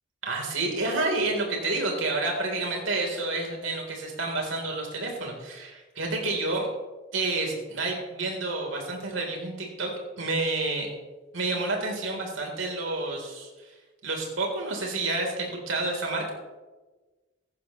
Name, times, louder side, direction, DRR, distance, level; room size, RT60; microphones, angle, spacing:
voice 1, 0.2-6.7 7.1-10.9 11.3-13.7 14.0-16.3, right 2 dB, 90° right, 0 dB, 3.8 m, -29 dB
17.0 x 14.5 x 3.2 m, 1.2 s
head